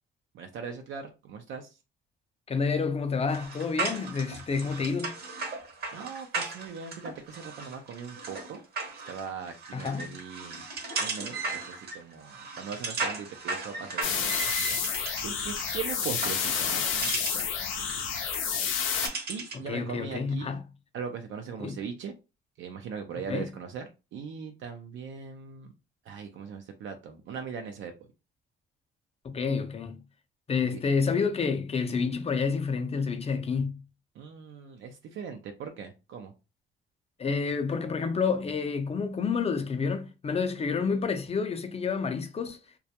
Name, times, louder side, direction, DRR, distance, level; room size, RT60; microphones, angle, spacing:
voice 1, 0.3-1.8 5.9-8.6 9.1-10.6 11.0-14.5 15.2-17.5 19.3-20.5 20.9-22.1 22.6-25.7 26.0-28.1 30.7-30.8 34.1-36.3, right 6 dB, 75° right, 0.4 m, -40 dB
voice 2, 2.5-5.2 9.7-10.1 19.7-20.6 21.6-21.8 23.3-23.5 29.2-30.0 30.5-33.8 37.2-42.6, left 5 dB, 30° left, 0.4 m, -29 dB
sound 1, 3.3-19.7, right 3 dB, 50° right, 0.8 m, -37 dB
sound 2, 14.0-19.1, left 7 dB, 90° left, 0.5 m, -29 dB
2.2 x 2.1 x 2.7 m
cardioid pair, 90°, 20 cm